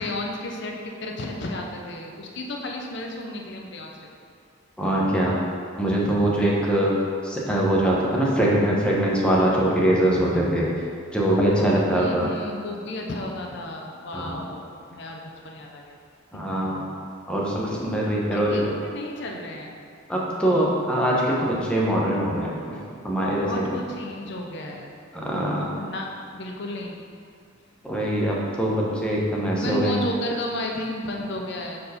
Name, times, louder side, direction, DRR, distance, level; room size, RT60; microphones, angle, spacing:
voice 1, 0.0-3.9 11.3-11.4 11.7-16.0 16.3-16.4 18.3-19.8 23.0-24.9 25.7-27.0 29.6-31.8, left 1 dB, 60° left, 0 dB, 0.5 m, -33 dB
voice 2, 4.8-5.4 5.8-6.9 7.2-10.7 11.1-12.3 14.1-14.4 16.3-16.8 17.3-18.7 20.1-22.8 23.0-23.5 25.1-25.7 27.8-30.0, right 1 dB, 5° left, -4 dB, 0.8 m, -22 dB
4.6 x 4.2 x 5.0 m, 2.2 s
head